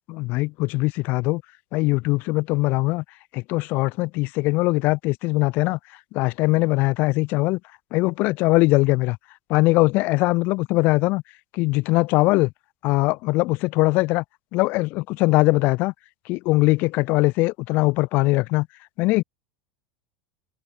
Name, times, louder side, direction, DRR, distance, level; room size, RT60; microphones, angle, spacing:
voice 1, 0.1-1.4 1.7-3.0 3.3-5.8 6.1-7.6 7.9-9.2 9.5-11.2 11.5-12.5 12.8-14.2 14.5-15.9 16.3-18.7 19.0-19.2, left 22 dB, 55° left, 0.9 m, -21 dB
hypercardioid pair, 85°, 4 cm